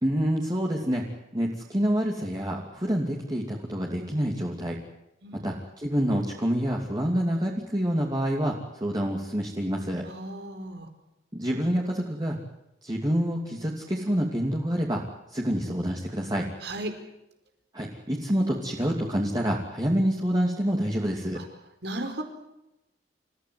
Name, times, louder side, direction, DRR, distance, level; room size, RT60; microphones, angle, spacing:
voice 1, 0.0-1.0 1.3-4.8 5.4-10.0 11.3-12.4 12.8-15.0 15.3-16.5 17.7-21.4, equal, 25° right, -1 dB, 2.9 m, -27 dB
voice 2, 5.2-5.5 10.0-10.9 16.6-16.9 21.3-21.5 21.8-22.2, right 1 dB, 75° right, 7 dB, 4.8 m, -35 dB
29.0 x 16.0 x 9.6 m, 0.90 s
head